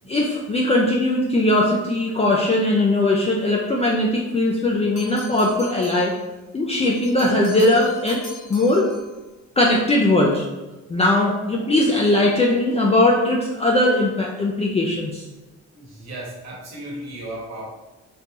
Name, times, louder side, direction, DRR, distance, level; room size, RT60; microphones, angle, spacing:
voice 1, 0.1-6.1 6.5-8.2 8.5-8.9 9.6-10.5 10.9-15.2, left 1 dB, 20° left, -2 dB, 0.4 m, -19 dB
sound 1, 5.0-6.2 6.9-9.1, left 2 dB, 70° left, 1.2 m, -41 dB
voice 2, 15.7-17.7, right 1 dB, 60° right, -3 dB, 1.3 m, -35 dB
3.7 x 2.7 x 2.9 m, 1.1 s
cardioid pair, 90°, 30 cm